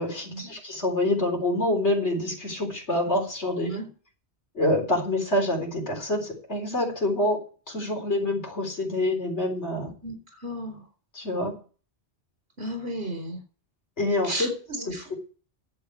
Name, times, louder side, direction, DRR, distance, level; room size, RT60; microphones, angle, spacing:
voice 1, 0.0-3.7 4.5-7.4 7.7-9.9 11.1-11.6 14.0-15.1, left 1 dB, 85° left, 2 dB, 4.3 m, -26 dB
voice 2, 10.4-10.8 12.6-13.4 14.2-14.5 14.9-15.1, right 1 dB, 60° right, 5 dB, 4.6 m, -33 dB
11.0 x 8.1 x 8.3 m, 0.39 s
omnidirectional pair, 1.1 m